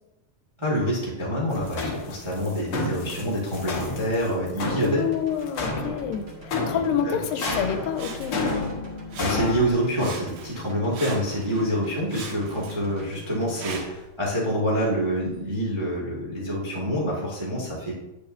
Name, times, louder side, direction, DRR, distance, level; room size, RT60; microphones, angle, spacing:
voice 1, 0.6-5.0 6.7-7.2 9.2-17.9, equal, 20° right, -6 dB, 0.7 m, -27 dB
sound 1, 1.5-9.7, left 3 dB, 65° left, 1.3 m, -31 dB
voice 2, 4.8-8.5, left 8 dB, 85° left, 7 dB, 2.3 m, -28 dB
sound 2, 4.8-13.8, right 4 dB, 45° right, 1.6 m, -46 dB
Sawing, 7.3-8.8 9.1-9.7 10.0-11.7 12.1-14.1 14.7-14.8, right 5 dB, 75° right, 2.6 m, -40 dB
8.8 x 8.5 x 2.6 m, 1.0 s
omnidirectional pair, 4.0 m